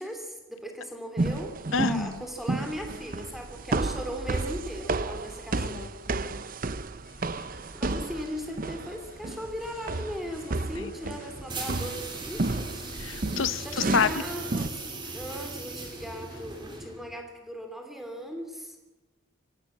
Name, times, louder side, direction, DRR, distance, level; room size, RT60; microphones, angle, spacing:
voice 1, 0.0-5.9 7.4-7.5 7.7-12.7 13.6-14.8 15.1-18.7, equal, ahead, 4 dB, 2.9 m, -38 dB
sound 1, 1.2-14.7, right 2 dB, 40° right, 0.7 m, -32 dB
voice 2, 1.7-2.2 5.5-5.9 6.3-6.4 10.8-10.9 13.0-14.1, left 5 dB, 70° left, 15 dB, 0.8 m, -28 dB
sound 2, 7.0-16.6, left 1 dB, 50° left, 5.4 m, -52 dB
sound 3, 11.5-17.1, right 2 dB, 20° right, 3.4 m, -39 dB
25.0 x 16.5 x 7.4 m, 1.1 s
head